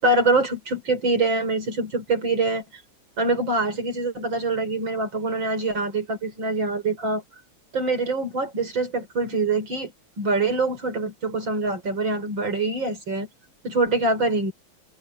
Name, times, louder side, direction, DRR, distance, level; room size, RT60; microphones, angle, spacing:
voice 1, 0.0-2.8 3.2-7.2 7.7-9.9 10.2-13.3 13.6-14.5, right 3 dB, 75° right, 5.0 m, -24 dB
open air
omnidirectional pair, 2.1 m